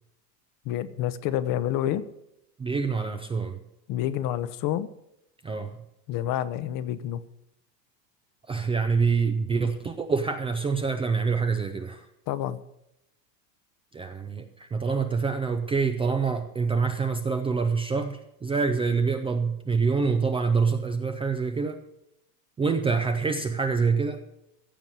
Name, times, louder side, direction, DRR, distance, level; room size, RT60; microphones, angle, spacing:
voice 1, 0.6-2.0 3.9-4.9 6.1-7.2 12.3-12.6, left 12 dB, 40° left, 14 dB, 0.9 m, -28 dB
voice 2, 2.6-3.6 5.4-5.8 8.5-12.1 13.9-21.8 22.6-24.2, right 5 dB, 10° right, 6 dB, 0.5 m, -26 dB
15.0 x 7.1 x 7.5 m, 0.85 s
supercardioid pair, 140°, 49 cm